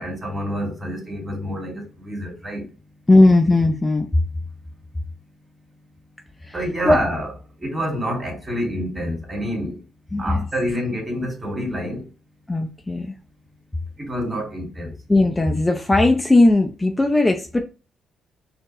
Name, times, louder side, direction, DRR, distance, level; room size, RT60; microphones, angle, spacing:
voice 1, 0.0-2.6 6.5-7.3 7.6-9.8 10.2-12.1 14.0-14.9, equal, 25° right, 2.2 m, -27 dB
voice 2, 3.1-4.1 6.4-6.5 6.8-7.0 10.1-10.5 12.5-13.1 15.1-17.6, left 2 dB, 15° left, 0.5 m, -17 dB
4.4 x 2.7 x 3.0 m
cardioid pair, 90°, 0 cm